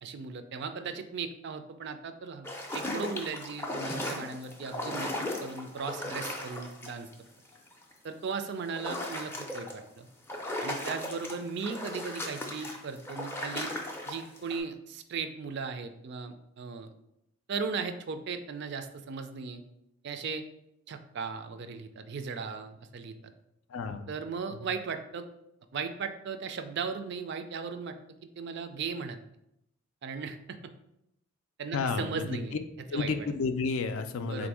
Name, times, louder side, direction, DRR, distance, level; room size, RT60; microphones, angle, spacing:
voice 1, 0.0-7.1 8.0-10.1 10.6-13.7 14.0-16.9 17.5-19.6 20.0-20.4 20.9-23.3 24.1-25.2 25.7-28.0 28.4-29.2 30.0-30.6 31.6-32.5 32.9-33.1 34.2-34.5, right 5 dB, 55° right, 8 dB, 0.4 m, -37 dB
sound 1, 2.4-7.1 7.6-7.9 8.7-9.8 10.3-14.6, left 1 dB, 10° left, 0.4 m, -36 dB
voice 2, 23.7-24.1 24.5-24.6 31.7-32.3 32.9-34.5, left 4 dB, 70° left, 8 dB, 0.4 m, -31 dB
3.6 x 2.6 x 4.7 m, 0.82 s
head